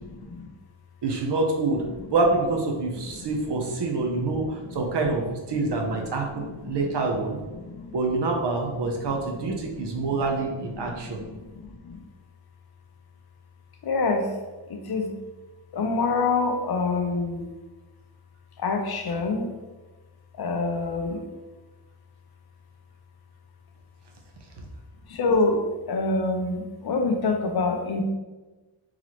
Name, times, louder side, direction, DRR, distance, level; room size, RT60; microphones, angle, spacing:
voice 1, 0.1-0.5 3.2-3.3 3.9-4.2 6.7-7.0 7.5-8.0 9.9-10.1 10.9-11.1 11.5-12.0 13.8-14.3 14.7-15.1 15.7-17.5 18.6-19.5 20.3-21.2 25.1-28.0, left 3 dB, 50° left, 4 dB, 0.5 m, -26 dB
voice 2, 1.0-1.8 2.1-7.4 7.9-11.2, right 3 dB, 55° right, 1 dB, 0.7 m, -26 dB
3.9 x 3.1 x 2.9 m, 1.2 s
wide cardioid pair, 165°, 50 cm